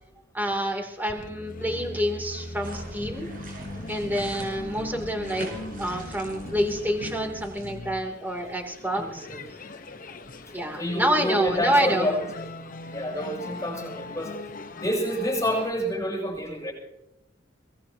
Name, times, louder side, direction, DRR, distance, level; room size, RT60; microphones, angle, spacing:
voice 1, 0.3-3.3 3.9-5.5 5.8-9.3 10.5-12.1, equal, 10° right, 1 dB, 3.0 m, -27 dB
sound 1, 1.1-15.7, left 2 dB, 45° left, 1.1 m, -40 dB
sound 2, 2.6-7.7, right 1 dB, 45° right, 7.9 m, -42 dB
voice 2, 8.9-9.4 10.8-12.5 12.9-14.3 14.7-16.7, equal, 15° left, 0 dB, 7.3 m, -28 dB
23.5 x 19.0 x 2.9 m, 0.89 s
head